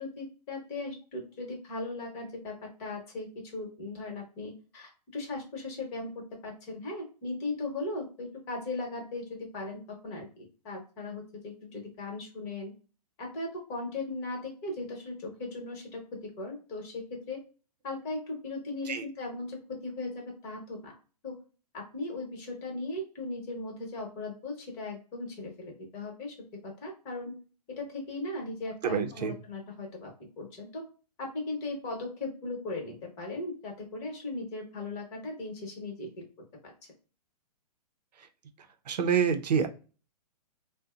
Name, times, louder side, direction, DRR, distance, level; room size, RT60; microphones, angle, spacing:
voice 1, 0.0-12.7 13.2-17.4 17.8-20.9 21.2-21.3 21.7-26.3 26.6-27.3 27.8-30.1 30.4-30.8 31.2-36.3 36.6-36.7, left 2 dB, 30° left, 1 dB, 1.0 m, -38 dB
voice 2, 28.8-29.3 38.9-39.7, right 7 dB, 80° right, 7 dB, 0.5 m, -27 dB
2.6 x 2.1 x 2.3 m, 0.35 s
hypercardioid pair, 140°, 21 cm